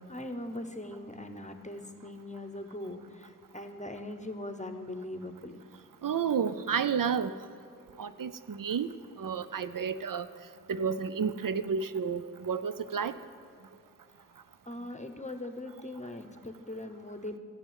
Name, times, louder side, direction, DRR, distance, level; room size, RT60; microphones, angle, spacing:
voice 1, 0.0-5.5 14.7-17.4, left 1 dB, 20° left, 7 dB, 1.0 m, -40 dB
voice 2, 6.0-7.3 8.0-10.3 10.7-13.2, right 6 dB, 85° right, 12 dB, 0.5 m, -31 dB
13.5 x 5.9 x 9.1 m, 2.4 s
wide cardioid pair, 55°, 32 cm